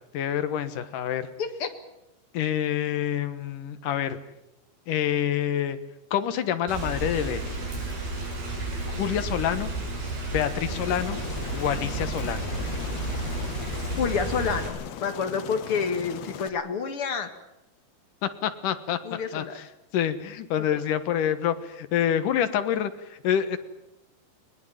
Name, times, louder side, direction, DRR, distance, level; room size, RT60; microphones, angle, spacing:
voice 1, 0.1-1.3 2.3-4.2 4.9-5.8 6.1-7.6 9.0-9.7 10.3-11.2 11.5-12.5 18.2-19.6 19.9-23.6, left 10 dB, 65° left, 11 dB, 2.7 m, -27 dB
Rain, 6.7-14.7, right 2 dB, 80° right, 8.3 m, -32 dB
Aircraft, 10.7-16.5, left 10 dB, 80° left, 3.4 m, -39 dB
voice 2, 14.0-14.8 15.0-17.3 19.0-19.6, left 6 dB, 45° left, 7 dB, 2.2 m, -28 dB
21.0 x 20.5 x 9.1 m, 0.88 s
omnidirectional pair, 4.4 m